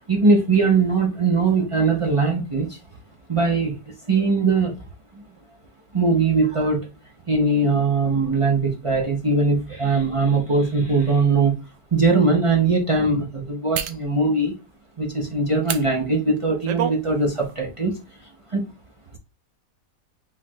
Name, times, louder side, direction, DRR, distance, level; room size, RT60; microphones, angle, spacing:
voice 1, 0.0-2.8 3.3-3.7 4.1-4.7 5.1-5.2 5.9-6.8 7.3-11.6 11.9-14.5 15.0-17.9 18.5-18.7, right 3 dB, 40° right, -1 dB, 0.4 m, -20 dB
sound 1, 10.9-11.0 11.6-11.8 13.7-14.0 15.6-15.8 16.4-17.0 17.4-17.5, right 9 dB, 75° right, 0.7 m, -28 dB
4.1 x 2.4 x 4.2 m, 0.30 s
omnidirectional pair, 1.9 m